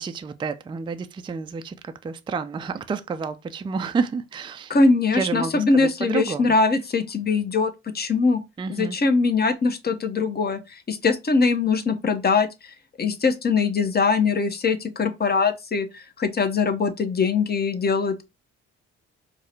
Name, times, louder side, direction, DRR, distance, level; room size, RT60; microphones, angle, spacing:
voice 1, 0.0-4.7 5.1-6.5 8.6-9.0, right 5 dB, 15° right, 0.4 m, -30 dB
voice 2, 4.7-8.4 8.7-12.5 13.0-18.2, left 4 dB, 30° left, 0.7 m, -22 dB
4.7 x 2.1 x 2.8 m
hypercardioid pair, 50°, 34 cm